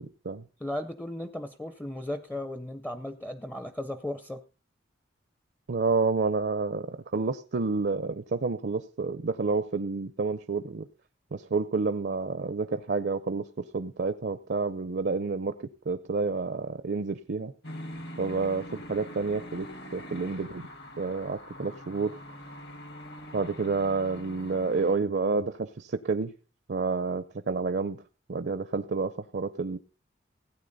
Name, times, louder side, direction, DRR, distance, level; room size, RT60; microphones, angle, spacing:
voice 1, 0.0-0.4 5.7-10.9 11.3-17.5 18.2-19.7 19.9-20.7 21.0-22.2 23.3-26.3 26.7-28.0 28.3-29.8, right 4 dB, 60° right, 11 dB, 0.5 m, -29 dB
voice 2, 0.6-4.4, left 1 dB, 10° left, 11 dB, 0.5 m, -36 dB
sound 1, 17.6-25.0, equal, 60° left, 1.6 m, -43 dB
16.0 x 9.1 x 4.0 m, 0.36 s
head